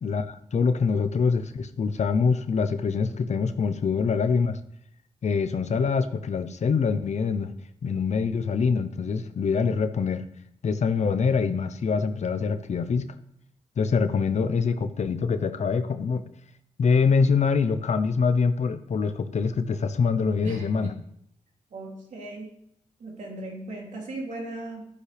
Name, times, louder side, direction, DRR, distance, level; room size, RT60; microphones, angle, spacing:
voice 1, 0.0-4.6 5.2-7.5 7.8-10.2 10.6-13.1 13.8-16.2 16.8-20.9, left 5 dB, 65° left, 11 dB, 0.8 m, -24 dB
voice 2, 20.4-20.9 21.7-22.5 23.0-24.8, right 1 dB, 75° right, -2 dB, 3.1 m, -37 dB
11.0 x 9.9 x 3.4 m, 0.72 s
cardioid pair, 75°, 13 cm